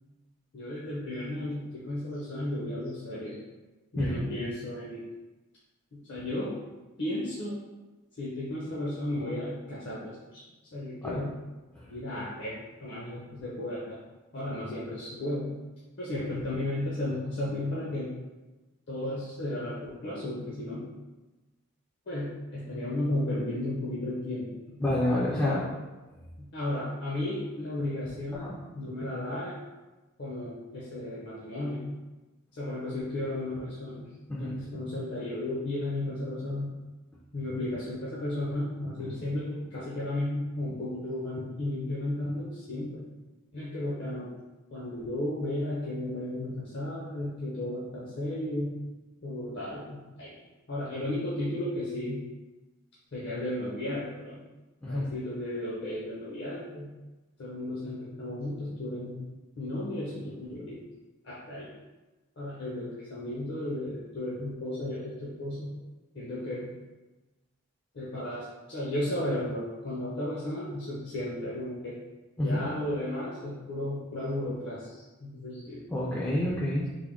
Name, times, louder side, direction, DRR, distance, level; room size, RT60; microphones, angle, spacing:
voice 1, 0.5-3.4 3.9-5.1 5.9-6.6 7.0-7.5 8.2-10.4 10.7-11.3 11.9-14.0 14.3-15.7 16.0-18.1 18.9-20.9 22.1-24.8 25.4-25.7 26.4-29.6 30.2-31.9 32.5-34.1 34.4-36.7 37.3-43.1 43.5-44.3 44.7-48.8 49.2-50.3 50.7-52.2 53.1-54.4 54.9-56.9 57.4-59.2 59.6-60.8 61.2-61.7 62.4-65.7 66.1-66.8 67.9-72.0 72.4-75.8, left 1 dB, 50° left, -7 dB, 0.6 m, -34 dB
voice 2, 24.8-25.6 28.3-28.5 34.3-34.5 54.8-55.1 72.4-72.6 75.9-76.9, left 1 dB, 10° left, -6 dB, 0.3 m, -28 dB
3.5 x 2.1 x 3.5 m, 1.1 s
head